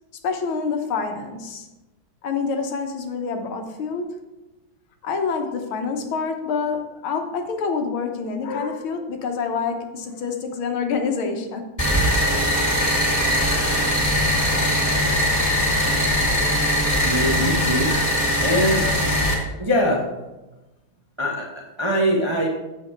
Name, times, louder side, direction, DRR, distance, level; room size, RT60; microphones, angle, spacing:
voice 1, 0.2-1.7 2.2-4.2 5.0-11.7, left 5 dB, 85° left, 5 dB, 1.8 m, -27 dB
sound 1, 11.8-19.3, equal, 10° left, 1.9 m, -21 dB
voice 2, 17.0-17.9 18.4-18.8 19.6-20.0 21.2-21.4 21.8-22.5, equal, 30° right, -2 dB, 0.5 m, -22 dB
7.8 x 6.9 x 4.5 m, 1.1 s
omnidirectional pair, 2.2 m